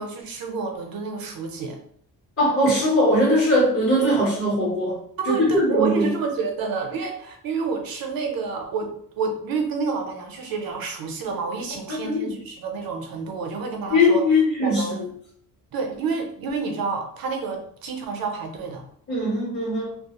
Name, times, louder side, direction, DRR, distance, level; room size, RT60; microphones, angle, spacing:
voice 1, 0.0-1.8 5.2-14.3 14.6-15.1 15.7-18.9, right 4 dB, 70° right, 3 dB, 0.6 m, -29 dB
voice 2, 2.4-6.1 11.9-12.3 13.9-14.9 19.1-20.0, left 1 dB, 40° left, -5 dB, 0.8 m, -20 dB
2.3 x 2.0 x 2.8 m, 0.62 s
wide cardioid pair, 150°, 36 cm